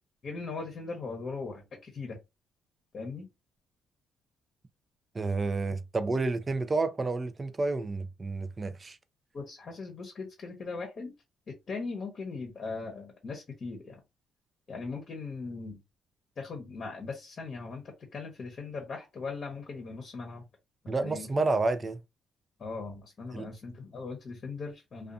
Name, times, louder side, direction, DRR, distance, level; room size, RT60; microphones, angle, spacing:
voice 1, 0.2-2.2 2.9-3.3 9.3-11.1 11.5-14.0 14.7-15.8 16.4-17.8 18.1-20.4 20.8-21.3 22.6-25.1, left 4 dB, 50° left, 0.8 m, -39 dB
voice 2, 5.1-9.0 20.9-22.0 23.3-23.5, right 3 dB, 30° right, 0.4 m, -30 dB
2.5 x 2.3 x 2.5 m
cardioid pair, 90°, 0 cm